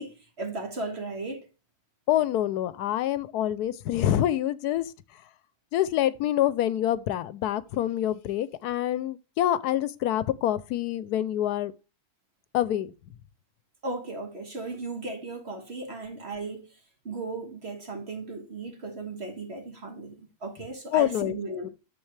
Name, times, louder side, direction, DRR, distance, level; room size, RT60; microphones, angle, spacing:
voice 1, 0.0-1.5 13.8-16.7 17.1-21.7, right 3 dB, 40° right, 1.9 m, -36 dB
voice 2, 2.1-4.9 5.7-11.7 12.5-12.9 20.9-21.3 21.6-21.7, left 12 dB, 85° left, 1.2 m, -26 dB
10.5 x 6.9 x 3.2 m
omnidirectional pair, 1.6 m